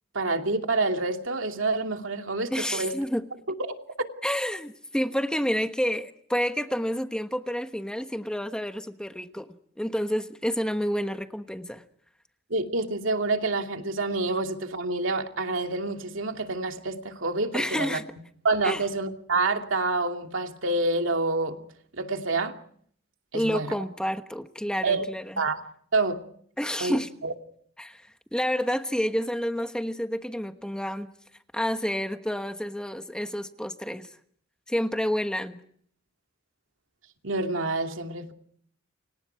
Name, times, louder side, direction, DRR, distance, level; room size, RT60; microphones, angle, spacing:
voice 1, 0.1-3.0 3.7-4.1 12.5-18.0 18.4-21.6 22.0-22.6 23.3-23.7 24.8-25.0 25.4-25.6 25.9-26.2 26.8-27.3 37.2-38.3, right 3 dB, 75° right, 2.7 m, -27 dB
voice 2, 2.5-3.2 4.2-9.5 9.8-11.8 17.5-18.0 18.6-18.8 23.3-25.2 26.6-27.1 27.8-28.0 28.3-31.1 31.5-34.1 34.7-35.6, equal, 5° left, 1.2 m, -29 dB
29.5 x 26.0 x 4.7 m
head